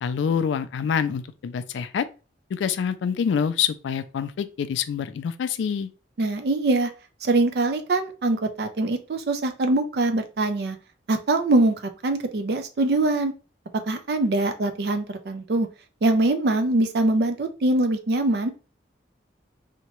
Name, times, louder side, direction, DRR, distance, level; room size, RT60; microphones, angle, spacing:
voice 1, 0.0-2.1 2.5-5.9, left 7 dB, 80° left, 0.3 m, -26 dB
voice 2, 6.2-6.9 7.2-10.8 11.1-11.7 12.0-13.3 13.9-15.7 16.0-18.5, right 2 dB, 60° right, 0.4 m, -23 dB
2.8 x 2.1 x 2.9 m
head